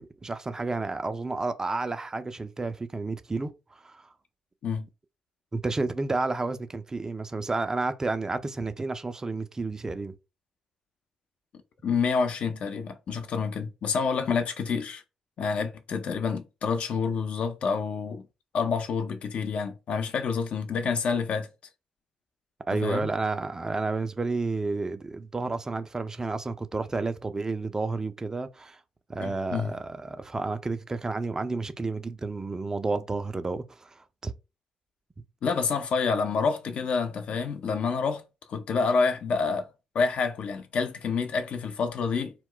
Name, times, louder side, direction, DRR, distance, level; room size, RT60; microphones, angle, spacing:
voice 1, 0.0-4.1 5.5-10.1 22.7-28.8 29.1-34.3, right 3 dB, 25° right, 0.4 m, -31 dB
voice 2, 11.8-15.0 15.4-18.2 18.5-21.5 22.8-23.1 29.2-29.7 35.4-38.2 38.5-39.7 39.9-42.3, left 5 dB, 55° left, 0.5 m, -28 dB
2.2 x 2.1 x 3.7 m
hypercardioid pair, 45°, 2 cm